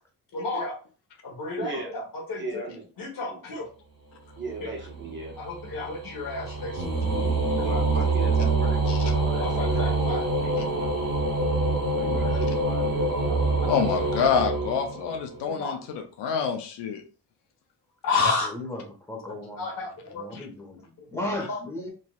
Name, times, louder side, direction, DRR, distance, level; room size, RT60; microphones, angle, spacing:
voice 1, 0.3-0.7 1.2-2.0 2.3-2.6 3.0-3.6 4.6-4.7 5.4-6.8 7.6-7.7 9.4-10.2 10.7-10.9 12.3-12.4 13.2-13.4 15.5-15.8 18.0-18.5 19.6-20.2 21.2-21.6, left 3 dB, 55° left, 0 dB, 1.1 m, -31 dB
voice 2, 1.6-1.9 2.3-2.8 3.2-3.4 4.4-5.4 7.6-10.8 11.9-13.1, right 3 dB, 30° right, -1 dB, 1.3 m, -37 dB
sound 1, 4.5-15.4, right 2 dB, 55° right, 1.1 m, -26 dB
voice 3, 6.4-7.0 18.4-21.9, left 1 dB, 5° left, -1 dB, 1.1 m, -37 dB
voice 4, 13.7-17.0, left 7 dB, 85° left, 5 dB, 0.6 m, -27 dB
3.1 x 2.6 x 2.3 m, 0.37 s
cardioid pair, 90°, 40 cm